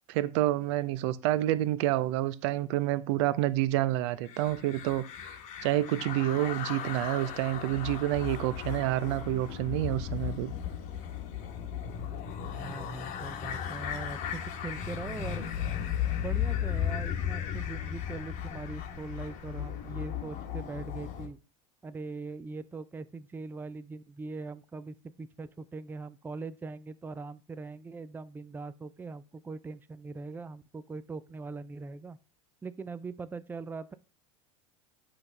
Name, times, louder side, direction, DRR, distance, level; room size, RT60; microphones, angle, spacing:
voice 1, 0.1-10.5, right 14 dB, 60° right, 0.6 m, -29 dB
sound 1, 4.2-21.3, left 9 dB, 50° left, 1.2 m, -36 dB
voice 2, 12.4-15.6 16.1-21.4 21.8-32.2 32.6-33.9, right 4 dB, 10° right, 0.4 m, -41 dB
8.6 x 5.3 x 3.4 m
hypercardioid pair, 85°, 17 cm